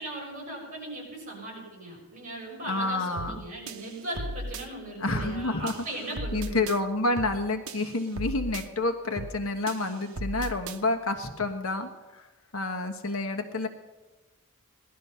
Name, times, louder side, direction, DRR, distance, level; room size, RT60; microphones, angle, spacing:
voice 1, 0.0-6.6, right 2 dB, 35° right, -3 dB, 6.5 m, -38 dB
voice 2, 2.7-3.4 5.0-5.7 6.3-12.3 12.5-13.7, left 2 dB, 70° left, 6 dB, 1.3 m, -29 dB
sound 1, 3.2-3.4 3.7-4.7 5.2-5.4 5.7-6.8 7.2-7.4 7.7-8.7 9.2-9.4 9.7-10.8, right 1 dB, 75° right, 1.0 m, -36 dB
18.5 x 12.5 x 5.7 m, 1.2 s
head